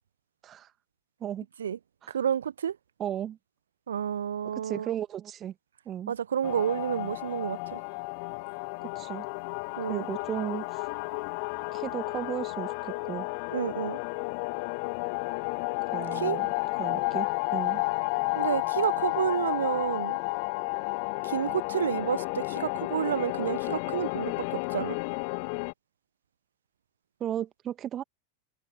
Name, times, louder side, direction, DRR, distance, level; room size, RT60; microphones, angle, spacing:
voice 1, 2.1-2.8 3.9-5.0 6.1-7.8 9.8-10.1 13.5-14.0 16.1-16.4 18.3-20.2 21.2-25.0, right 8 dB, 65° right, 1.0 m, -30 dB
voice 2, 3.0-3.4 4.6-5.5 5.9-6.1 8.8-9.3 9.9-10.9 11.7-13.3 15.9-16.5 16.8-17.8 27.2-28.0, right 10 dB, 30° right, 1.9 m, -35 dB
sound 1, 6.4-25.7, left 34 dB, 45° left, 0.3 m, -32 dB
figure-of-eight pair, 90°, 0 cm